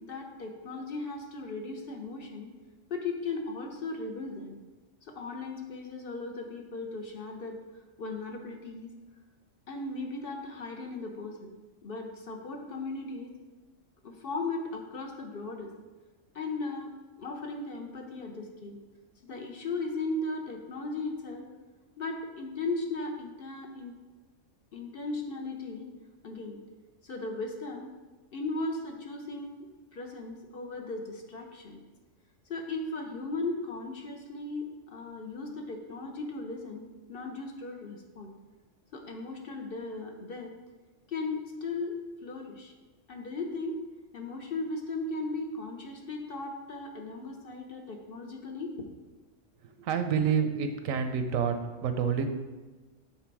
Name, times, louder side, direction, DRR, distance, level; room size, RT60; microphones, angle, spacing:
voice 1, 0.0-2.5 2.9-4.6 5.0-7.6 8.0-8.9 9.7-11.5 11.8-13.4 14.0-15.7 16.3-18.8 19.3-21.5 22.0-24.0 24.7-25.9 26.2-26.6 27.0-27.9 28.3-31.8 32.5-38.3 38.9-40.5 41.1-42.7 43.1-43.8 44.1-48.9, left 3 dB, 55° left, 3 dB, 0.8 m, -37 dB
voice 2, 49.6-52.3, right 7 dB, 85° right, 7 dB, 1.0 m, -28 dB
7.6 x 3.9 x 4.6 m, 1.2 s
omnidirectional pair, 1.4 m